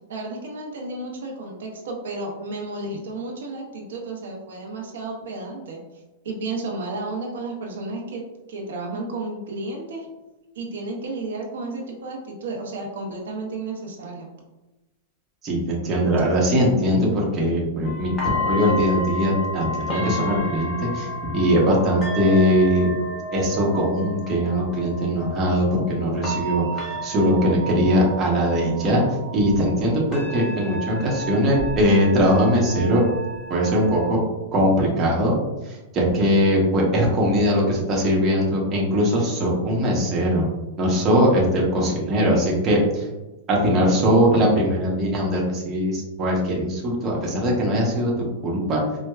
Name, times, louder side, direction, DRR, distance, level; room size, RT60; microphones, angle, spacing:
voice 1, 0.1-5.8 6.2-8.2 8.5-10.1 10.5-14.3, right 2 dB, 85° right, 0 dB, 0.7 m, -32 dB
voice 2, 15.4-22.9 23.3-29.0 29.3-33.0 33.5-34.2 34.5-35.4 35.6-40.4 40.8-43.1 43.5-48.1 48.4-48.8, equal, 25° right, -3 dB, 0.9 m, -21 dB
sound 1, 17.8-34.1, left 1 dB, 15° left, 1.0 m, -32 dB
4.4 x 2.1 x 2.3 m, 1.1 s
supercardioid pair, 145°, 0 cm